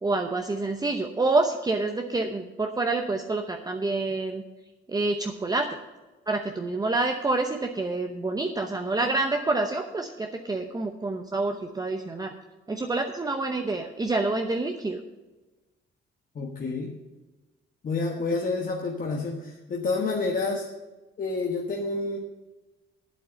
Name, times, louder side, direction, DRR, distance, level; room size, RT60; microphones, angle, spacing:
voice 1, 0.0-4.4 4.9-5.8 6.3-12.3 12.7-15.0, right 3 dB, 20° right, 4 dB, 0.8 m, -27 dB
voice 2, 16.3-16.9 17.8-20.7 21.2-22.2, left 3 dB, 45° left, 0 dB, 1.3 m, -29 dB
8.5 x 7.8 x 7.8 m, 1.2 s
cardioid pair, 105°, 21 cm